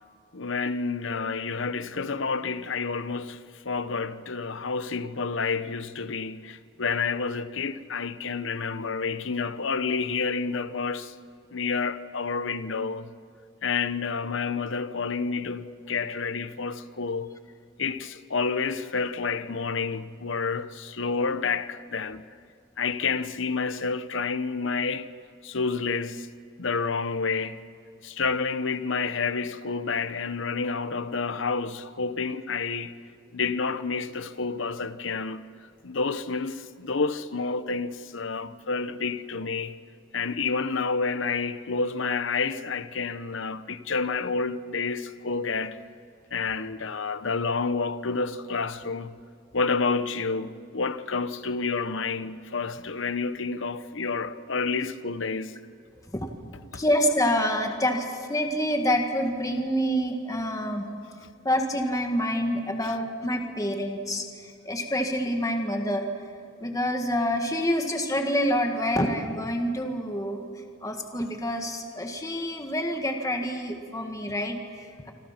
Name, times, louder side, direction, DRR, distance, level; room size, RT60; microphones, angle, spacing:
voice 1, 0.3-3.4 3.6-11.1 11.5-13.1 13.6-17.3 17.8-22.3 22.8-25.1 25.4-26.3 26.6-27.6 28.0-32.9 33.3-35.4 35.8-39.8 40.1-45.8 46.3-49.2 49.5-55.5 56.7-56.8, left 4 dB, 65° left, 1.0 m, -29 dB
voice 2, 56.7-60.9 61.4-66.1 66.6-70.5 70.8-75.1, equal, 15° left, 1.8 m, -27 dB
27.0 x 26.5 x 5.9 m
head